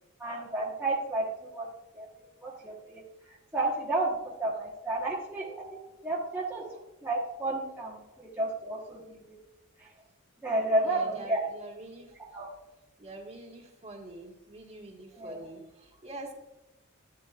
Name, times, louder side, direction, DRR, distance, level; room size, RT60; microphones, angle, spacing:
voice 1, 0.2-1.7 1.9-2.1 2.4-3.0 3.3-9.3 9.8-9.9 10.4-11.4 12.3-12.5 15.2-15.4, right 2 dB, 10° right, -5 dB, 1.3 m, -32 dB
voice 2, 10.8-12.6 13.0-16.3, right 2 dB, 30° right, 0 dB, 1.7 m, -45 dB
12.0 x 10.0 x 2.5 m, 0.99 s
head